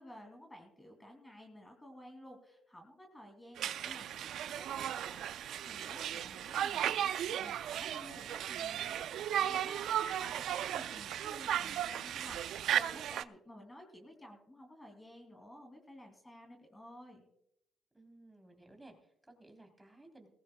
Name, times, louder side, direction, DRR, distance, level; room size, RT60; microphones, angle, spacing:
voice 1, 0.0-17.3, equal, 15° left, 2 dB, 2.9 m, -53 dB
Conversation, 3.6-13.2, right 10 dB, 75° right, 0.5 m, -36 dB
voice 2, 17.9-20.3, right 2 dB, 10° right, 3 dB, 3.7 m, -58 dB
19.0 x 15.5 x 2.3 m, 0.77 s
cardioid pair, 90°, 0 cm